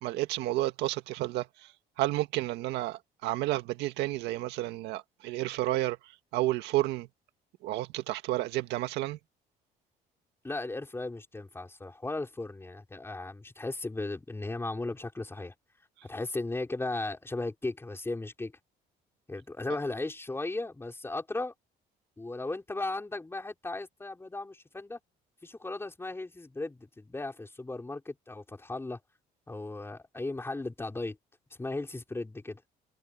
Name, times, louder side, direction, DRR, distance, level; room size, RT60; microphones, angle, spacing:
voice 1, 0.0-1.7 2.0-6.0 6.3-7.1 7.6-9.2, right 16 dB, 90° right, 1.8 m, -31 dB
voice 2, 10.4-15.5 16.0-18.5 19.3-21.5 22.2-25.0 25.4-29.0 29.5-31.2 31.6-32.6, left 2 dB, 15° left, 5.5 m, -36 dB
cardioid pair, 110°, 17 cm